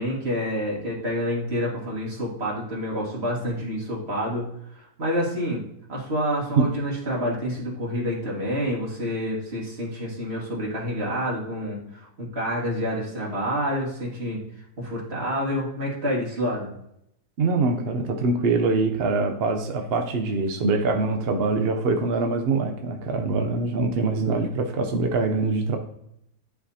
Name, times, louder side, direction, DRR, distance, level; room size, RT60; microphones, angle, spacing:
voice 1, 0.0-5.6 5.9-14.4 14.8-16.7, equal, 35° right, -4 dB, 2.1 m, -28 dB
voice 2, 17.4-25.8, right 3 dB, 65° right, 4 dB, 0.6 m, -24 dB
10.0 x 4.7 x 2.8 m, 0.76 s
omnidirectional pair, 1.8 m